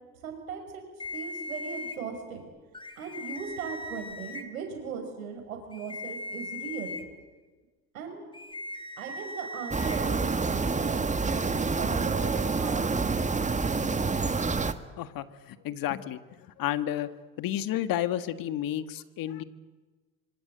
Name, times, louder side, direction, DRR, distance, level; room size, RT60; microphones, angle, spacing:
voice 1, 0.2-0.8 1.1-2.5 3.0-6.9 7.9-8.3 9.0-12.9, right 6 dB, 90° right, 4 dB, 5.8 m, -38 dB
sound 1, 1.0-2.0 2.7-4.4 5.7-7.0 8.3-10.0, left 2 dB, 10° left, 3.3 m, -39 dB
sound 2, 9.7-14.7, right 4 dB, 20° right, 1.7 m, -27 dB
voice 2, 15.0-16.2 16.6-17.1 17.4-19.4, left 12 dB, 55° left, 11 dB, 1.7 m, -31 dB
25.5 x 25.5 x 8.0 m, 1.3 s
hypercardioid pair, 75°, 40 cm